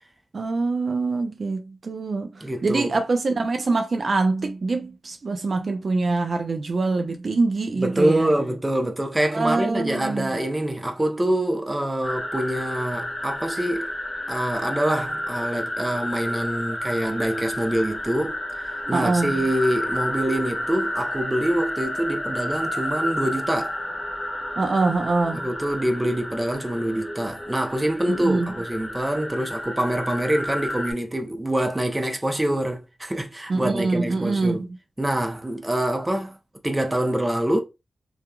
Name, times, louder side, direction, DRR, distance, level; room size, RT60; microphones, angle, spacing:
voice 1, 0.3-2.3 2.6-8.3 9.3-10.3 18.9-19.3 24.6-25.5 28.1-28.5 33.5-34.7, right 3 dB, 60° right, 0.4 m, -24 dB
voice 2, 2.4-3.0 7.7-13.9 14.3-18.4 18.9-23.8 25.3-34.7 35.0-36.3 36.6-37.6, right 1 dB, 20° right, 0.6 m, -25 dB
sound 1, 12.0-30.9, left 1 dB, 20° left, 1.1 m, -31 dB
2.8 x 2.4 x 2.3 m
cardioid pair, 65°, 0 cm